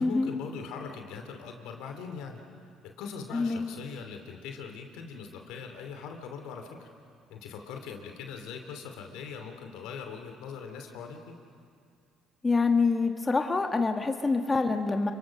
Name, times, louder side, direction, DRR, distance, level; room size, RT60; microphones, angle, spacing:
voice 1, 0.0-2.4 2.8-6.9 7.3-11.3, left 5 dB, 75° left, 4 dB, 2.8 m, -41 dB
voice 2, 3.3-3.6 12.4-15.1, left 4 dB, 25° left, 5 dB, 1.6 m, -26 dB
29.0 x 23.5 x 6.5 m, 2.4 s
hypercardioid pair, 60°, 0 cm